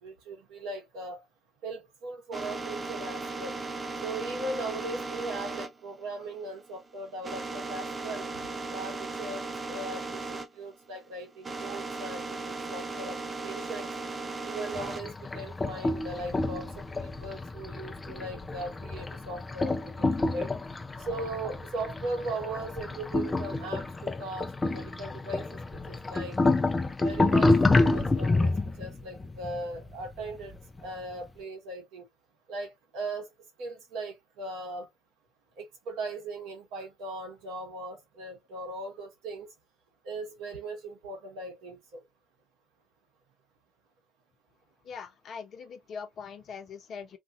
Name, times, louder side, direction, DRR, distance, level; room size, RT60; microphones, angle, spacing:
voice 1, 0.0-1.2 1.6-3.6 4.0-8.3 8.7-13.9 14.4-20.5 21.0-26.5 27.0-30.5 30.8-32.0 32.5-33.3 33.6-34.9 35.6-39.5 40.0-42.0, right 2 dB, 75° right, 1.7 m, -39 dB
sound 1, 2.3-10.5 10.7-15.1 15.5-17.3, right 3 dB, 35° right, 0.9 m, -37 dB
sound 2, 14.7-30.8, left 2 dB, 30° left, 0.7 m, -29 dB
voice 2, 44.8-47.2, left 6 dB, 60° left, 1.0 m, -42 dB
3.5 x 2.6 x 2.6 m
hypercardioid pair, 50°, 0 cm